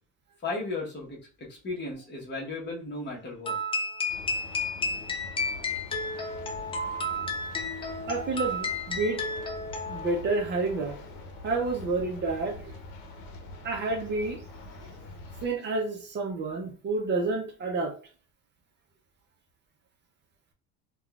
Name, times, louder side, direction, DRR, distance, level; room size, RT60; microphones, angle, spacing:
voice 1, 0.4-3.6, left 3 dB, 30° left, -3 dB, 1.1 m, -35 dB
sound 1, 3.4-10.3, left 2 dB, 15° left, 0.4 m, -32 dB
sound 2, 4.1-15.5, left 2 dB, 80° left, 0.8 m, -44 dB
voice 2, 8.1-9.3 9.9-11.0 11.4-12.7 13.6-14.4 15.4-17.9, right 3 dB, 35° right, 1 dB, 0.6 m, -29 dB
3.5 x 2.3 x 2.3 m, 0.40 s
cardioid pair, 140°, 33 cm